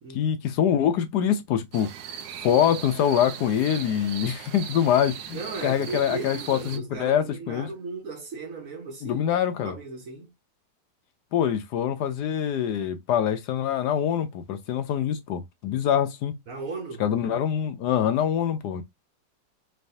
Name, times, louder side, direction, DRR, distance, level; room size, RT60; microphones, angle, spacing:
voice 1, 0.1-1.9 2.4-7.7 9.0-9.8 11.3-16.3 17.0-18.8, left 9 dB, 75° left, 1.1 m, -24 dB
sound 1, 1.7-6.8, right 8 dB, 90° right, 1.3 m, -39 dB
voice 2, 5.3-9.3 9.6-10.3 16.5-17.0, right 4 dB, 55° right, 1.3 m, -36 dB
4.0 x 3.3 x 2.6 m
omnidirectional pair, 1.9 m